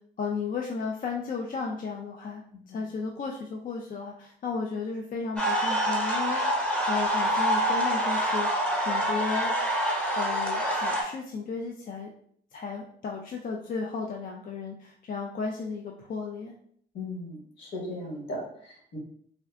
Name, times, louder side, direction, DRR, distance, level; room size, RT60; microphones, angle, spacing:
voice 1, 0.2-2.4 2.7-8.5 8.8-9.5 10.2-12.1 12.5-16.5, left 4 dB, 45° left, 0 dB, 0.4 m, -34 dB
sound 1, 5.4-11.0, equal, 5° left, 0.9 m, -26 dB
voice 2, 16.9-19.0, left 1 dB, 70° left, -3 dB, 1.4 m, -37 dB
3.6 x 2.2 x 2.3 m, 0.63 s
cardioid pair, 90°, 20 cm